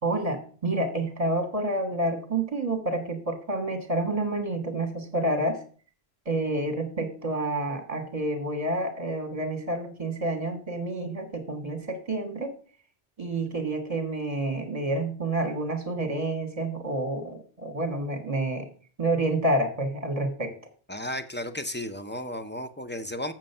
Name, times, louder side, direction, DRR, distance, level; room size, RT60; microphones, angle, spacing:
voice 1, 0.0-5.6 6.2-12.5 13.2-18.7 19.0-20.5, right 2 dB, 35° right, 6 dB, 1.6 m, -29 dB
voice 2, 20.9-23.3, left 1 dB, 15° left, 9 dB, 0.5 m, -34 dB
7.5 x 7.4 x 5.5 m, 0.42 s
omnidirectional pair, 1.0 m